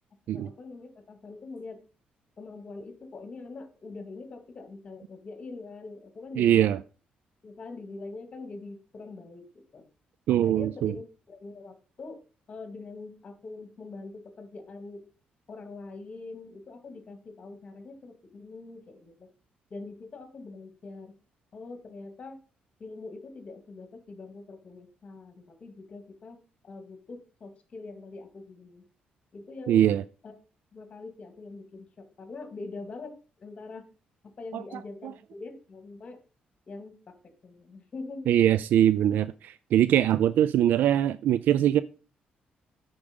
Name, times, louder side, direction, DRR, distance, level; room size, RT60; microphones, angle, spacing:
voice 1, 0.3-1.8 2.4-6.7 7.4-9.4 9.7-9.8 10.3-12.2 12.5-15.0 15.5-19.3 19.7-21.1 21.5-22.4 22.8-26.4 26.6-28.9 29.3-29.8 30.2-30.4 30.7-33.1 33.4-33.8 34.4-36.2 36.7-36.9 37.4-38.3, left 3 dB, 40° left, 2.4 m, -43 dB
voice 2, 6.4-6.8 10.3-11.0 29.7-30.0 34.5-34.6 38.3-41.8, right 11 dB, 80° right, 0.4 m, -22 dB
8.5 x 6.2 x 5.3 m
cardioid pair, 115°, 3 cm